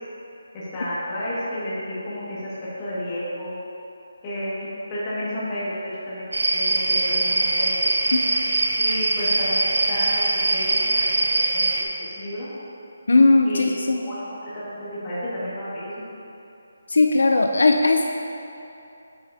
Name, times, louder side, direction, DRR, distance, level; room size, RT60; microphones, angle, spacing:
voice 1, 0.5-2.5 2.8-3.6 4.2-5.8 6.1-7.8 8.8-11.9 12.2-12.5 13.4-13.8 14.0-16.0, equal, 15° left, -10 dB, 1.7 m, -31 dB
sound 1, 6.3-11.8, right 2 dB, 90° right, 0.7 m, -22 dB
voice 2, 13.1-14.1 16.9-18.1, left 3 dB, 70° left, 4 dB, 0.4 m, -18 dB
8.6 x 7.3 x 2.7 m, 2.8 s
hypercardioid pair, 175°, 0 cm